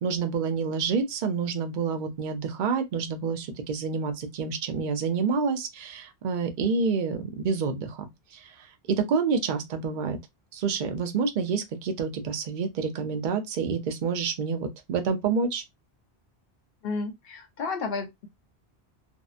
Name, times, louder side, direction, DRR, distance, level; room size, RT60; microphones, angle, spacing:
voice 1, 0.0-10.2 10.5-15.6, right 5 dB, 55° right, 0.6 m, -28 dB
voice 2, 16.8-18.3, left 4 dB, 65° left, 0.8 m, -32 dB
2.6 x 2.0 x 2.4 m
omnidirectional pair, 1.1 m